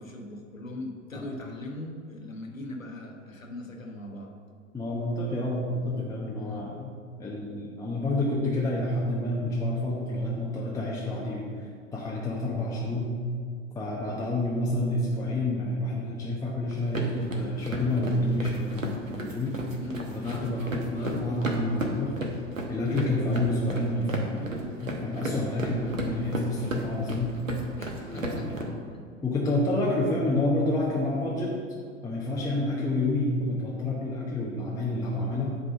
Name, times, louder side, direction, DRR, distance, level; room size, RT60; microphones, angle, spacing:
voice 1, 0.0-4.3 6.4-6.7 19.7-20.2 27.8-29.0 32.7-32.8, left 1 dB, 85° left, 1 dB, 1.2 m, -40 dB
voice 2, 4.7-6.9 7.2-13.1 13.7-19.6 20.1-22.2 22.7-27.4 28.1-28.6 29.2-31.5 32.0-35.6, left 1 dB, 10° left, -5 dB, 0.9 m, -29 dB
sound 1, 16.7-28.6, right 1 dB, 85° right, 1.1 m, -34 dB
8.4 x 3.8 x 6.7 m, 2.2 s
figure-of-eight pair, 95°, 39 cm